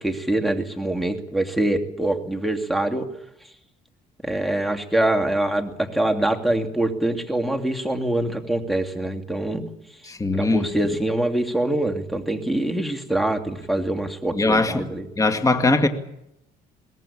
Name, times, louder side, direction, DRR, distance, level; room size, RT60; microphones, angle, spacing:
voice 1, 0.0-3.1 4.2-9.6 10.3-15.1, right 1 dB, ahead, 5 dB, 2.6 m, -24 dB
voice 2, 10.1-10.7 14.3-14.9 15.2-15.9, left 2 dB, 20° left, 6 dB, 2.2 m, -20 dB
22.5 x 18.5 x 8.7 m, 0.82 s
cardioid pair, 110°, 17 cm